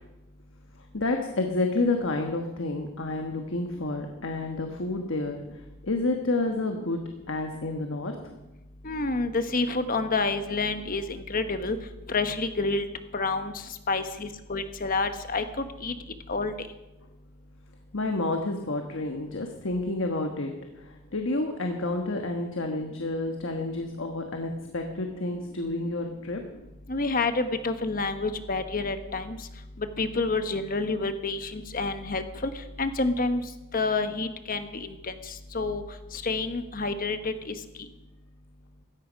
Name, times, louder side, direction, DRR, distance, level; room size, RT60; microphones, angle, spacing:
voice 1, 0.9-7.0 7.3-8.1 17.9-20.5 20.8-26.4, left 2 dB, 65° left, 4 dB, 1.3 m, -29 dB
voice 2, 8.8-11.8 12.1-12.8 13.1-13.5 13.9-15.9 16.3-16.5 26.9-29.4 30.0-32.5 32.8-33.4 33.7-34.9 35.5-35.8 36.2-37.5, left 3 dB, 40° left, 9 dB, 1.2 m, -28 dB
16.0 x 13.5 x 5.3 m, 1.0 s
head